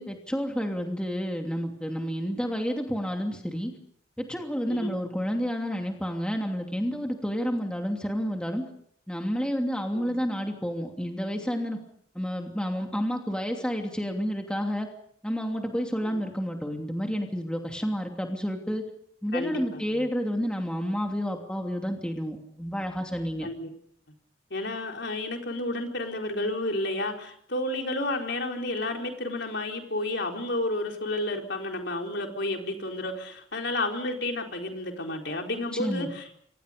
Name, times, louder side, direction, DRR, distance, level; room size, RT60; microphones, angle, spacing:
voice 1, 0.0-3.7 4.2-8.6 9.1-11.8 12.1-14.9 15.2-18.8 19.2-23.5 35.7-36.1, equal, 5° left, 2 dB, 2.8 m, -30 dB
voice 2, 19.3-20.1 23.4-23.7 24.5-36.2, left 2 dB, 60° left, 2 dB, 4.4 m, -31 dB
28.5 x 25.0 x 5.3 m, 0.65 s
head